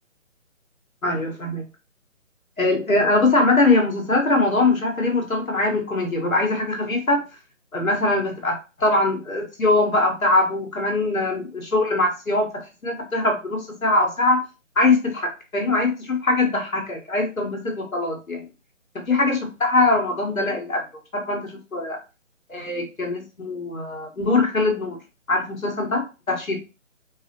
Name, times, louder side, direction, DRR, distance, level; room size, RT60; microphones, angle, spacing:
voice 1, 1.0-1.6 2.6-7.2 7.7-14.4 14.7-18.4 18.9-20.8 21.1-22.0 22.5-25.0 25.3-26.6, left 2 dB, 85° left, 1 dB, 1.7 m, -22 dB
4.6 x 2.1 x 3.0 m, 0.30 s
figure-of-eight pair, 155°, 40 cm